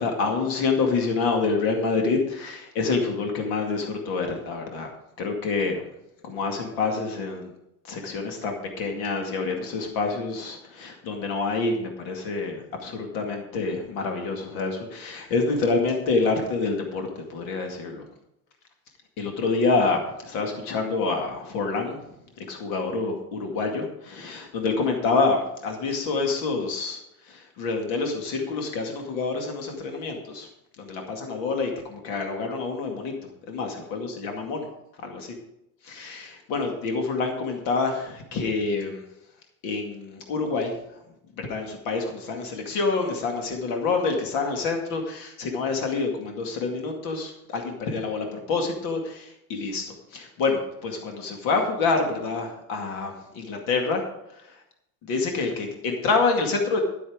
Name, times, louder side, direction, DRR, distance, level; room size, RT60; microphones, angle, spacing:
voice 1, 0.0-4.9 5.2-5.8 6.2-7.5 7.8-18.0 19.2-22.0 22.4-27.0 27.3-30.5 30.8-33.1 33.5-34.7 35.0-35.4 35.8-39.0 39.6-40.7 41.4-54.0 55.0-56.8, left 4 dB, 50° left, 3 dB, 2.3 m, -27 dB
12.0 x 8.4 x 5.0 m, 0.83 s
cardioid pair, 170°, 42 cm